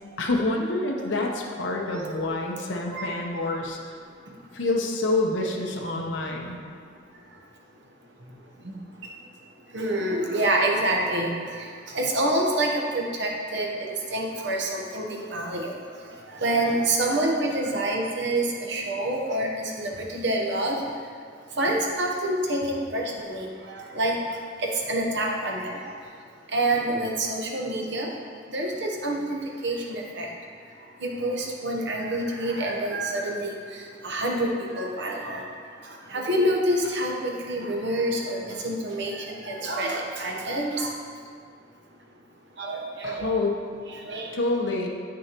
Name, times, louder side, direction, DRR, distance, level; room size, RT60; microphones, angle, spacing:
voice 1, 0.2-3.8 4.5-6.6 43.0-43.6 44.3-44.9, left 2 dB, 70° left, 0 dB, 0.8 m, -27 dB
voice 2, 1.9-2.7 2.9-3.4 8.6-8.7 9.7-15.7 16.4-20.8 21.6-24.1 24.6-25.8 26.5-28.1 28.5-30.3 31.0-35.5 36.1-40.9 42.6-43.3 43.8-44.3, right 1 dB, 65° right, 0 dB, 1.0 m, -27 dB
8.2 x 6.2 x 3.0 m, 2.1 s
head